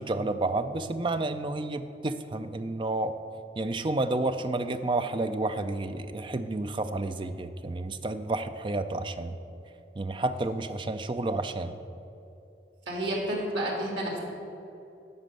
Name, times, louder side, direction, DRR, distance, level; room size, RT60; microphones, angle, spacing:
voice 1, 0.0-3.1 3.6-9.4 10.0-11.8, right 2 dB, 30° right, 10 dB, 0.4 m, -30 dB
voice 2, 12.9-14.2, right 1 dB, 85° right, -1 dB, 2.2 m, -30 dB
11.5 x 4.3 x 7.7 m, 2.8 s
head